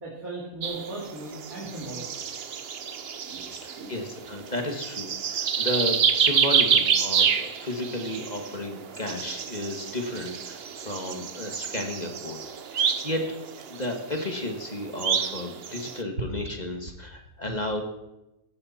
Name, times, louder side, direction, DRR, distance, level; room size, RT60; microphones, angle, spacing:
voice 1, 0.0-2.1 3.2-3.4 3.7-3.9, right 2 dB, 85° right, -5 dB, 3.4 m, -37 dB
sound 1, 0.6-16.0, right 7 dB, 50° right, 0.9 m, -28 dB
voice 2, 3.5-12.4 12.7-13.2 13.7-17.8, left 1 dB, 30° left, 3 dB, 1.9 m, -33 dB
17.5 x 13.5 x 4.3 m, 0.92 s
omnidirectional pair, 1.4 m